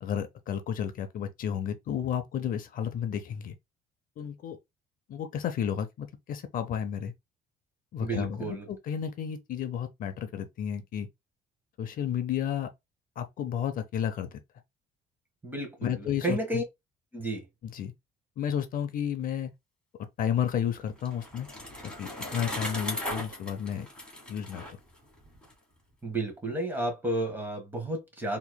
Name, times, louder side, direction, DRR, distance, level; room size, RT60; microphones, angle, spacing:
voice 1, 0.0-3.5 4.2-4.6 5.1-7.1 7.9-11.1 11.8-12.7 13.2-14.4 15.8-16.6 17.6-17.9 18.4-19.5 20.2-21.5 21.8-23.9 24.3-24.8, left 9 dB, 55° left, 0.6 m, -32 dB
voice 2, 8.0-8.7 15.4-16.6 17.1-17.5 26.0-28.4, right 1 dB, 10° right, 1.5 m, -32 dB
Bicycle, 20.7-25.5, left 1 dB, 5° left, 1.6 m, -38 dB
4.3 x 3.0 x 2.2 m
cardioid pair, 110°, 17 cm